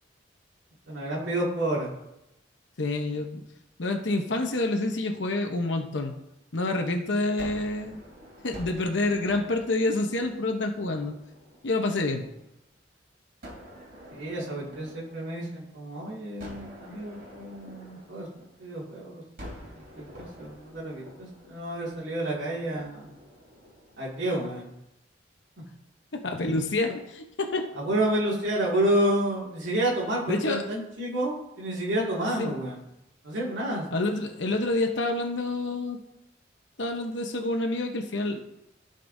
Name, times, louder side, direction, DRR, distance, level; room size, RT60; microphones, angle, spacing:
voice 1, 0.9-1.9 14.1-19.2 19.9-23.1 24.0-24.7 27.8-32.8 33.2-33.9, right 1 dB, 85° right, -5 dB, 2.3 m, -29 dB
voice 2, 2.8-3.4 3.8-6.1 6.5-8.0 8.4-11.1 11.6-12.3 26.1-27.7 30.3-30.6 32.4-32.6 33.9-36.0 36.8-38.4, left 2 dB, 75° left, 4 dB, 0.9 m, -28 dB
Gunshot gunfire, 7.4-12.5 13.4-15.8 16.4-18.9 19.4-24.6, equal, 55° right, 3.1 m, -48 dB
15.5 x 5.3 x 2.7 m, 0.87 s
head